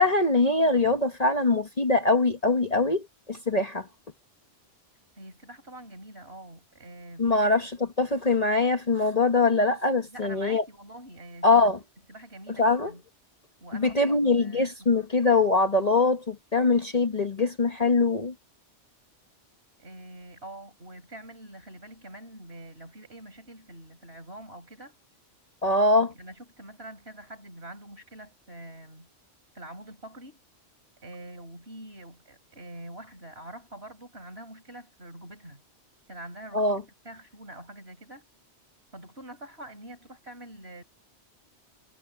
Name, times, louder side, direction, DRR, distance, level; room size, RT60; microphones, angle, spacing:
voice 1, 0.0-3.9 7.2-10.6 11.4-11.8 12.6-12.9 13.7-18.3 25.6-26.1 36.5-36.8, left 3 dB, 35° left, 1.3 m, -23 dB
voice 2, 5.2-7.7 10.1-11.7 12.1-13.0 13.6-14.7 19.8-24.9 26.0-29.1 29.5-30.4 31.0-35.6 36.1-38.3 38.9-40.8, right 1 dB, 55° right, 6.1 m, -45 dB
omnidirectional pair, 1.2 m